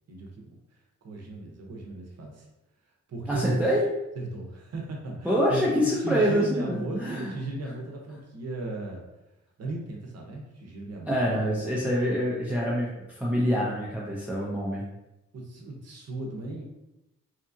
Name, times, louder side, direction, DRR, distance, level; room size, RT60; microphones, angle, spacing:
voice 1, 0.1-0.4 1.0-2.5 3.1-3.6 4.2-9.0 9.6-11.7 14.2-14.6 15.3-16.6, right 2 dB, 55° right, 0 dB, 0.7 m, -36 dB
voice 2, 3.3-3.8 5.2-7.4 11.1-14.8, equal, 5° right, -5 dB, 0.4 m, -26 dB
2.8 x 2.3 x 2.6 m, 0.96 s
cardioid pair, 105°, 30 cm